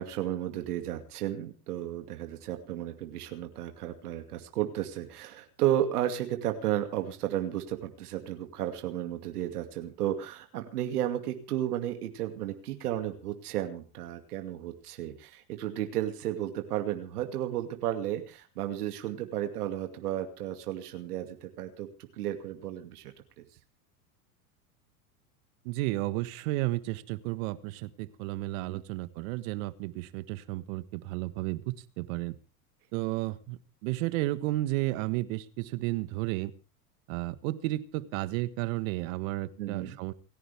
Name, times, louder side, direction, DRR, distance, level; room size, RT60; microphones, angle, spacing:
voice 1, 0.0-23.4 28.7-28.8 39.6-40.0, right 12 dB, 75° right, 6 dB, 2.5 m, -33 dB
voice 2, 25.6-32.3 32.9-36.5 37.1-40.1, right 18 dB, 60° right, 14 dB, 1.6 m, -32 dB
28.5 x 11.0 x 3.5 m, 0.35 s
hypercardioid pair, 95°, 46 cm